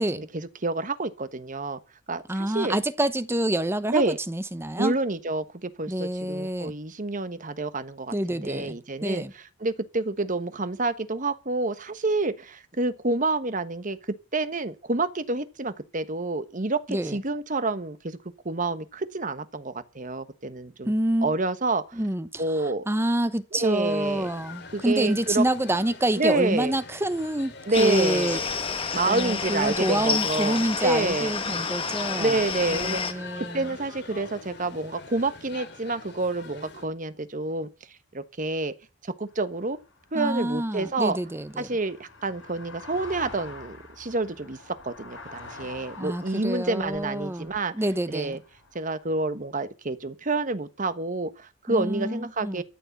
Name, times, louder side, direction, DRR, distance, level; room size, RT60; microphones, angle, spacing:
voice 1, 0.0-1.8 2.1-2.7 3.9-4.2 4.8-9.2 9.6-14.0 14.3-18.2 18.4-20.9 21.2-22.0 22.4-22.8 23.5-24.3 24.7-25.4 26.2-26.7 27.6-28.5 28.9-31.3 32.2-33.2 33.5-37.7 38.1-38.7 39.0-39.8 40.1-41.2 41.6-47.7 48.1-48.4 48.7-52.6, right 2 dB, 40° right, 1.2 m, -28 dB
voice 2, 2.3-5.0 5.9-6.7 8.1-9.3 16.9-17.2 20.8-21.3 21.9-22.4 22.9-28.4 29.1-32.4 32.7-33.7 40.1-41.8 46.0-48.4 51.7-52.6, right 1 dB, 10° right, 0.9 m, -27 dB
sound 1, 23.8-36.9, left 4 dB, 60° left, 3.0 m, -45 dB
sound 2, 27.7-33.1, left 5 dB, 30° left, 1.5 m, -29 dB
sound 3, 39.3-49.3, left 3 dB, 75° left, 7.6 m, -47 dB
14.0 x 6.5 x 9.5 m
head